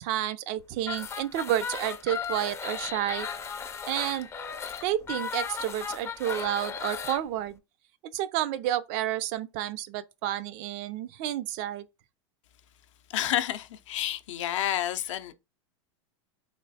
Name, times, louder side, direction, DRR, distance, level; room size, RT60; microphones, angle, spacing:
voice 1, 0.0-3.3 3.9-4.3 4.8-7.6 8.1-11.8, right 12 dB, 50° right, 0.4 m, -30 dB
sound 1, 0.8-7.2, left 6 dB, 15° left, 0.4 m, -36 dB
voice 2, 13.1-15.3, left 12 dB, 75° left, 0.5 m, -29 dB
3.2 x 3.1 x 2.7 m
hypercardioid pair, 110°, 16 cm